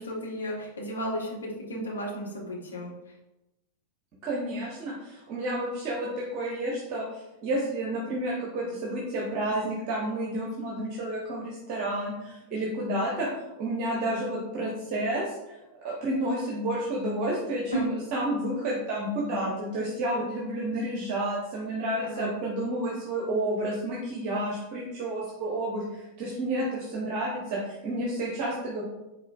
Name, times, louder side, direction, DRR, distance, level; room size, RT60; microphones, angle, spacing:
voice 1, 0.0-2.9 17.7-17.9 22.0-22.3, right 1 dB, 70° left, -2 dB, 1.1 m, -33 dB
voice 2, 4.2-13.3 13.6-15.5 15.8-28.8, right 1 dB, 40° right, -4 dB, 1.0 m, -30 dB
4.8 x 3.8 x 2.5 m, 0.96 s
figure-of-eight pair, 90°, 0 cm